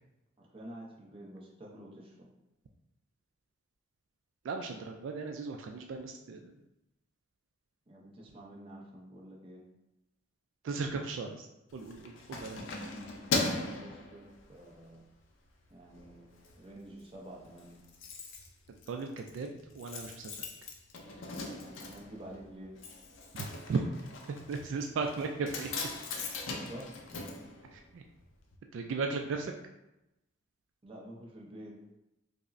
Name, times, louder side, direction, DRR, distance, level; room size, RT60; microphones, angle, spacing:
voice 1, 0.4-2.3 7.9-9.6 13.5-15.0 15.7-17.8 21.4-22.7 26.6-26.9 30.8-31.8, right 1 dB, 30° right, -3 dB, 0.6 m, -49 dB
voice 2, 4.4-6.5 10.6-11.5 11.7-12.7 18.9-20.4 23.4-23.8 24.5-25.7 27.7-28.0 28.7-29.5, right 4 dB, 75° right, 4 dB, 0.3 m, -36 dB
Keys jangling, 11.7-14.8 15.2-15.5 15.8-16.5 16.8-16.9 17.1-17.2 17.4-28.2 28.5-28.6, left 3 dB, 75° left, 0.5 m, -39 dB
5.0 x 2.0 x 2.5 m, 0.91 s
head